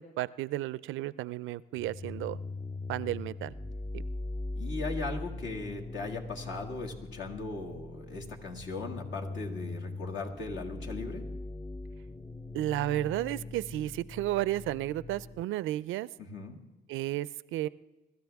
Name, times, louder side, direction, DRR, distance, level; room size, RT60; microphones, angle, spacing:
voice 1, 0.0-2.4 2.9-3.5 12.5-16.1 16.9-17.7, right 15 dB, 80° right, 20 dB, 0.4 m, -33 dB
sound 1, 1.7-15.4, left 2 dB, 15° left, 0.4 m, -41 dB
voice 2, 4.6-11.2 16.2-16.6, left 3 dB, 70° left, 1 dB, 2.1 m, -38 dB
22.5 x 13.0 x 3.5 m, 1.0 s
cardioid pair, 90°, 20 cm